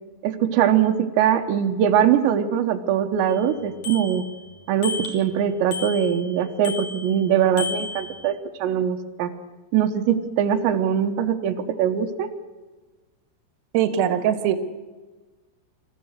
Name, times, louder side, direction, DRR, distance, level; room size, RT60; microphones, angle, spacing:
voice 1, 0.2-4.2 4.7-9.3 9.7-12.3, right 9 dB, 85° right, 6 dB, 3.3 m, -22 dB
Bicycle bell, 3.3-3.4 3.8-4.4 4.8-5.3 5.7-6.3 6.6-7.2 7.6-8.3, left 3 dB, 45° left, 3.9 m, -33 dB
voice 2, 13.7-14.6, right 10 dB, 70° right, 9 dB, 2.8 m, -21 dB
24.0 x 14.5 x 8.1 m, 1.3 s
omnidirectional pair, 5.0 m